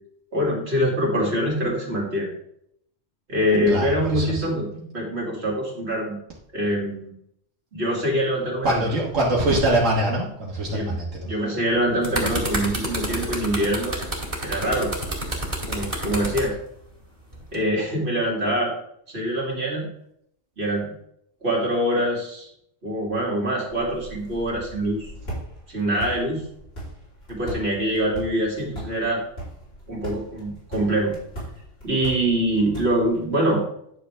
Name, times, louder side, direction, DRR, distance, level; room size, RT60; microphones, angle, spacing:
voice 1, 0.3-2.3 3.3-6.2 6.5-7.1 7.7-8.9 10.7-11.0 11.2-14.0 14.4-14.9 15.7-16.5 17.5-18.7 19.1-19.9 20.6-20.9 21.4-22.5 22.8-25.1 25.7-26.4 27.3-29.2 29.9-31.1 31.8-33.6, equal, 55° right, -3 dB, 2.8 m, -24 dB
voice 2, 3.7-4.4 8.6-11.3, right 1 dB, 85° right, -4 dB, 1.9 m, -23 dB
sound 1, 11.7-16.4 17.3-17.5, right 1 dB, 30° right, 2.3 m, -28 dB
sound 2, 23.7-33.2, right 1 dB, 55° left, 3.7 m, -39 dB
10.0 x 6.7 x 3.4 m, 0.72 s
omnidirectional pair, 1.3 m